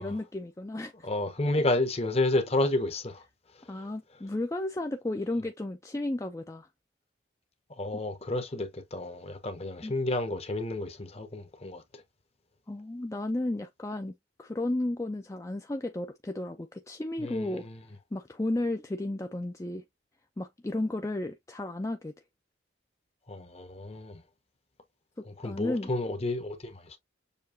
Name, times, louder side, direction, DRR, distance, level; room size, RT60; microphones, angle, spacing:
voice 1, 0.0-1.1 3.7-6.7 9.8-9.9 12.7-14.1 14.4-17.7 18.1-19.8 20.4-22.1 25.2-25.9, left 1 dB, 15° left, 0.4 m, -33 dB
voice 2, 1.0-3.2 7.8-12.0 17.2-17.8 23.3-24.2 25.3-27.0, left 2 dB, 35° left, 1.0 m, -31 dB
6.8 x 2.9 x 2.6 m
head